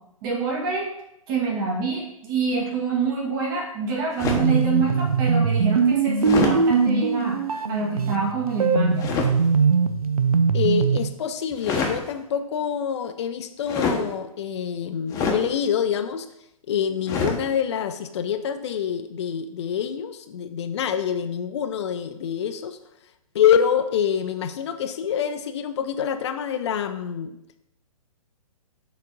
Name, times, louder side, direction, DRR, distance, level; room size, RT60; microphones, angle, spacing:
voice 1, 0.2-0.9 1.3-7.4 7.7-9.1, right 4 dB, 40° right, -2 dB, 2.0 m, -26 dB
sound 1, 4.2-4.6 6.2-6.6 9.0-9.3 11.5-12.0 13.7-14.1 15.1-15.4 17.1-17.4, left 4 dB, 20° left, 1.0 m, -25 dB
sound 2, 4.2-11.1, right 5 dB, 80° right, 0.6 m, -21 dB
voice 2, 10.5-16.3 16.7-22.8 23.3-27.4, left 8 dB, 50° left, 8 dB, 0.6 m, -26 dB
6.8 x 4.2 x 5.1 m, 0.82 s
figure-of-eight pair, 125°, 18 cm